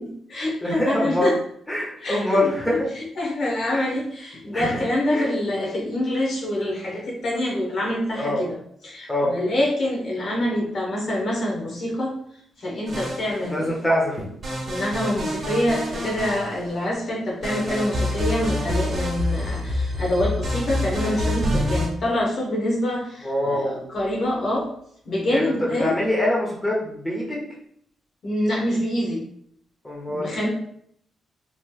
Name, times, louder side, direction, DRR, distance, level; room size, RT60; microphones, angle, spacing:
voice 1, 0.0-1.3 2.0-8.5 8.8-12.1 12.6-13.8 14.6-24.6 25.0-25.9 28.2-29.2 30.1-30.5, left 1 dB, 60° left, -4 dB, 1.0 m, -26 dB
voice 2, 0.6-1.3 1.7-2.9 3.7-3.8 4.5-4.8 5.1-5.3 8.1-8.4 9.1-9.3 13.0-13.1 13.5-14.2 23.2-23.8 25.3-25.4 25.8-27.4 29.8-30.3, left 1 dB, 20° left, -4 dB, 1.1 m, -24 dB
sound 1, 12.9-13.7 14.4-16.9 17.4-21.9, left 1 dB, 45° right, 1.1 m, -27 dB
3.2 x 3.1 x 2.2 m, 0.66 s
cardioid pair, 65°, 0 cm